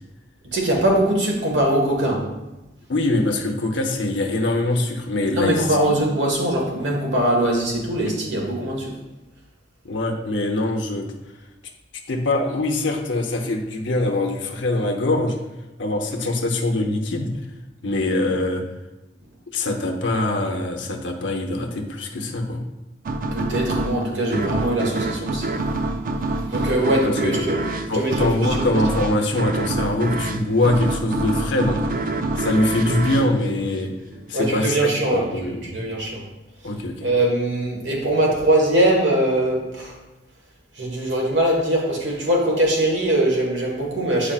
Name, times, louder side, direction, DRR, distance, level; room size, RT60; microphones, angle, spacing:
voice 1, 0.5-2.3 5.3-8.9 23.3-25.5 26.5-27.6 27.9-28.7 34.3-36.2 37.0-40.0 40.8-44.3, right 1 dB, 70° right, -1 dB, 1.5 m, -22 dB
voice 2, 2.9-5.7 9.8-11.1 12.1-15.3 15.8-17.3 17.8-18.6 19.5-22.7 27.0-27.3 27.9-33.9 34.3-34.8 35.1-35.8 36.6-37.1, left 2 dB, 80° left, 2 dB, 0.8 m, -23 dB
sound 1, 23.1-34.3, right 2 dB, 50° right, 0.4 m, -27 dB
8.7 x 4.9 x 2.4 m, 1.0 s
head